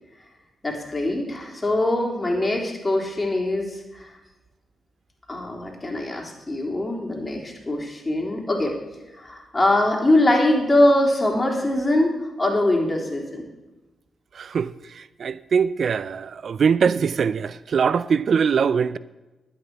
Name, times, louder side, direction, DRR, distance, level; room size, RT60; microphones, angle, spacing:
voice 1, 0.6-4.1 5.3-8.8 9.1-13.5, left 1 dB, 30° left, 3.7 m, -22 dB
voice 2, 14.3-19.0, right 6 dB, 65° right, 0.4 m, -22 dB
11.5 x 9.0 x 6.1 m
supercardioid pair, 45°, 0 cm